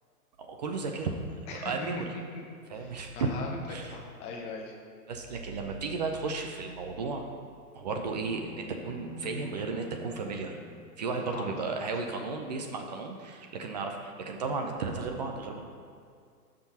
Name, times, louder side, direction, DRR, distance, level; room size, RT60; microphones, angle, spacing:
voice 1, 0.4-2.1 2.7-3.3 3.7-3.9 5.1-7.3 7.7-10.6 11.0-15.6, right 4 dB, 30° right, 3 dB, 0.5 m, -34 dB
voice 2, 1.5-2.0 2.8-4.7 11.2-11.8, left 3 dB, 15° left, 0 dB, 0.7 m, -40 dB
sound 1, 7.8-12.1, equal, 10° right, 1.1 m, -49 dB
14.5 x 6.1 x 2.8 m, 2.2 s
hypercardioid pair, 145°, 45 cm